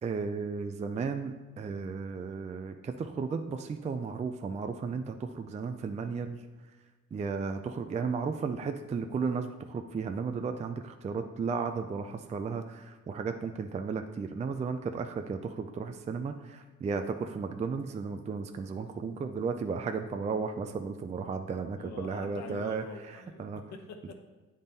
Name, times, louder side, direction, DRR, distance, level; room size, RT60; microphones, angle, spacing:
voice 1, 0.0-6.4 7.1-22.8 23.4-23.6, right 5 dB, 25° right, 7 dB, 0.4 m, -34 dB
voice 2, 21.8-24.1, left 4 dB, 65° left, 3 dB, 1.0 m, -45 dB
8.6 x 3.7 x 4.0 m, 1.2 s
cardioid pair, 90°, 30 cm